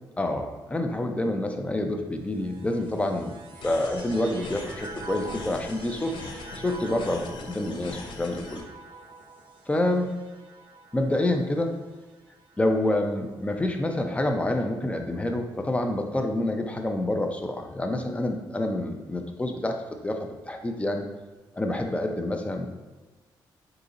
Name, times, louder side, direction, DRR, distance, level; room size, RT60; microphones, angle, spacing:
voice 1, 0.2-3.3 3.6-6.1 6.6-8.7 9.7-10.1 10.9-11.8 12.6-20.2 20.5-21.1 21.6-22.7, left 1 dB, 15° left, 4 dB, 0.5 m, -27 dB
sound 1, 2.2-13.7 14.4-15.2, right 3 dB, 80° right, 0.7 m, -46 dB
sound 2, 3.6-8.6, left 3 dB, 75° left, 0.6 m, -41 dB
3.9 x 2.8 x 3.8 m, 1.2 s
cardioid pair, 85°, 8 cm